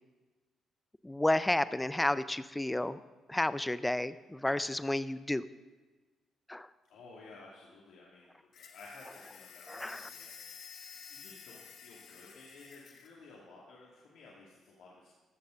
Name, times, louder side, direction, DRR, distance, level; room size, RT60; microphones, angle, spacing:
voice 1, 1.0-3.0 3.3-5.4 6.5-6.7 9.7-10.1, left 1 dB, 10° left, 14 dB, 0.5 m, -31 dB
voice 2, 6.9-15.1, left 3 dB, 85° left, -5 dB, 2.3 m, -55 dB
sound 1, 8.5-13.1, left 6 dB, 65° left, 1.2 m, -51 dB
14.5 x 6.8 x 6.3 m, 1.3 s
cardioid pair, 90°, 0 cm